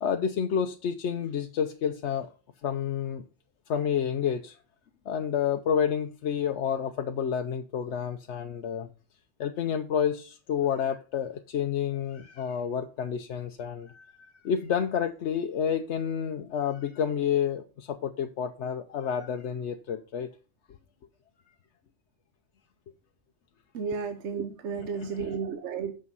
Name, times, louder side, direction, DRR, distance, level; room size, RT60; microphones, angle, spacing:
voice 1, 0.0-2.3 2.6-3.2 3.7-4.6 5.1-8.9 9.4-20.3 23.9-24.0 24.8-25.3, left 8 dB, 70° left, 1.0 m, -29 dB
voice 2, 23.7-25.9, right 6 dB, 70° right, 1.2 m, -33 dB
8.6 x 6.2 x 5.5 m
omnidirectional pair, 1.3 m